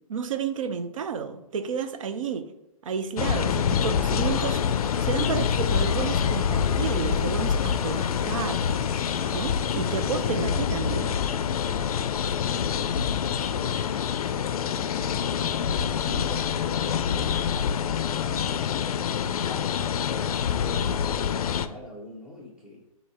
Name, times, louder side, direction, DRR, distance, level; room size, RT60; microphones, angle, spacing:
voice 1, 0.1-2.5 2.8-4.6 5.0-8.6 9.3-11.2, right 6 dB, 60° right, 0.5 m, -31 dB
sound 1, 3.2-21.7, left 8 dB, 75° left, 0.4 m, -26 dB
sound 2, 3.7-9.6, left 5 dB, 40° left, 0.7 m, -50 dB
sound 3, 4.1-10.5, right 2 dB, 85° right, 0.9 m, -43 dB
voice 2, 12.2-13.8 14.2-17.4 17.8-18.8 20.1-22.8, left 2 dB, 5° right, 0.6 m, -43 dB
4.2 x 2.8 x 4.2 m
hypercardioid pair, 165°, 19 cm